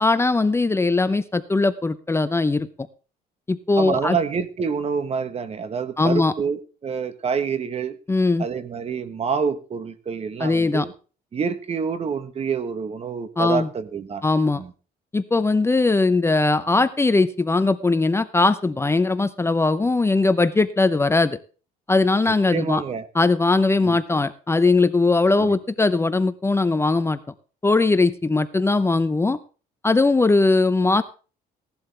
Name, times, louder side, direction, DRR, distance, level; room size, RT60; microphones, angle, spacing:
voice 1, 0.0-2.7 3.5-4.2 6.0-6.3 8.1-8.5 10.4-10.9 13.4-13.7 14.2-14.6 15.1-21.4 21.9-22.8 23.1-27.2 27.6-29.4 29.8-31.0, left 3 dB, 15° left, 13 dB, 0.7 m, -20 dB
voice 2, 3.8-8.0 8.4-10.9 11.3-14.2 14.5-14.7 22.5-23.1 23.8-24.0 25.4-25.5, right 6 dB, 35° right, 13 dB, 1.3 m, -27 dB
16.5 x 11.5 x 3.3 m, 0.36 s
cardioid pair, 110°, 17 cm